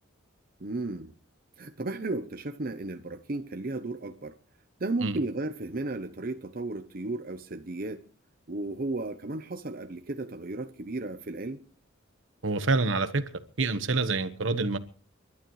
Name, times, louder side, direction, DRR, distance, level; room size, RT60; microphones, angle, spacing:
voice 1, 0.6-1.1 1.6-4.3 4.8-8.0 8.5-11.6, right 2 dB, 45° right, 0.8 m, -34 dB
voice 2, 12.4-13.2 13.6-14.8, right 3 dB, 70° right, 1.2 m, -26 dB
29.5 x 12.0 x 3.2 m
head